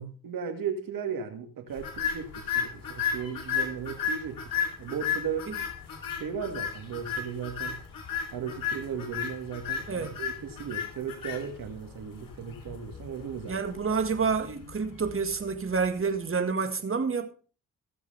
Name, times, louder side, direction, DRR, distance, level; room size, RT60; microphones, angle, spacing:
voice 1, 0.2-5.5 6.2-7.8 8.3-13.6, right 7 dB, 80° right, 2.1 m, -36 dB
sound 1, 1.8-16.1, left 7 dB, 75° left, 3.4 m, -35 dB
voice 2, 13.5-17.3, right 5 dB, 40° right, 1.8 m, -29 dB
16.5 x 7.2 x 3.4 m
cardioid pair, 70°, 33 cm